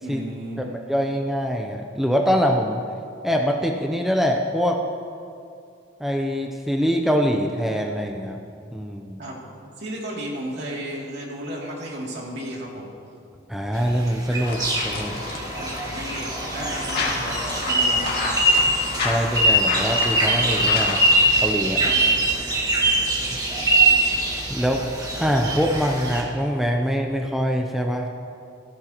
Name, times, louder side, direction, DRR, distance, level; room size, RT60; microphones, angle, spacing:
voice 1, 0.0-0.7 9.2-9.4 9.8-12.9 15.5-18.2 21.8-22.0, right 1 dB, 60° right, -3 dB, 2.8 m, -34 dB
voice 2, 0.6-2.8 3.2-4.8 6.0-8.4 8.7-9.2 13.5-15.2 19.0-21.0 21.4-21.8 24.5-24.8 25.2-28.1, equal, ahead, 1 dB, 0.6 m, -24 dB
sound 1, 13.7-26.2, right 1 dB, 20° right, 2.0 m, -22 dB
sound 2, 14.4-21.1, left 3 dB, 55° left, 2.1 m, -30 dB
18.0 x 15.0 x 3.0 m, 2.4 s
head